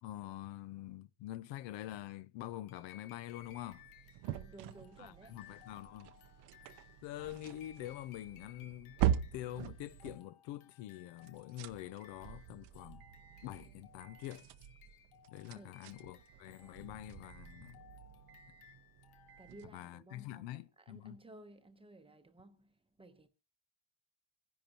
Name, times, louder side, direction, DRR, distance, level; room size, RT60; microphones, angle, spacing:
voice 1, 0.0-3.9 5.0-6.1 7.0-9.0 9.3-13.0 13.4-14.5 15.3-17.8 19.7-21.2, left 14 dB, 65° left, 0.7 m, -46 dB
sound 1, 2.7-19.7, left 9 dB, 85° left, 1.4 m, -62 dB
sound 2, 3.4-10.2 11.2-19.7, right 11 dB, 55° right, 0.7 m, -42 dB
voice 2, 4.3-5.4 15.5-15.9 16.6-16.8 19.4-23.3, right 1 dB, 10° right, 0.8 m, -57 dB
27.0 x 10.5 x 2.9 m
cardioid pair, 140°, 48 cm